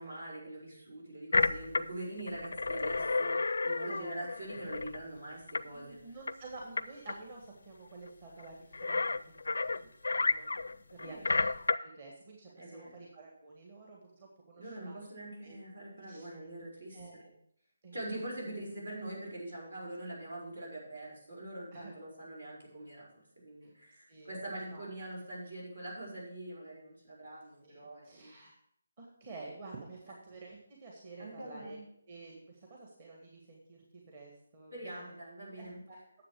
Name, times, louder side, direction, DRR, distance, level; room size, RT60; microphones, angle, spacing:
voice 1, 0.0-6.0 11.0-11.2 12.6-13.0 14.6-17.2 17.9-28.3 31.2-31.8 34.7-35.8, right 1 dB, 75° right, -4 dB, 4.9 m, -44 dB
sound 1, 1.3-1.8 2.2-5.0 5.5-5.6 6.3-6.4 6.8-6.9 7.1-7.2 8.4-8.5 8.7-11.8, left 3 dB, 65° left, 0.4 m, -31 dB
voice 2, 5.7-9.4 9.8-11.5 11.8-15.1 15.4-16.3 16.9-17.3 17.8-18.0 21.7-21.9 23.6-23.7 24.1-24.3 24.7-24.8 27.6-28.5 29.0-31.8 32.1-35.2 35.6-36.0, right 3 dB, 40° right, -2 dB, 1.8 m, -50 dB
9.9 x 7.4 x 4.8 m, 0.70 s
figure-of-eight pair, 150°, 0 cm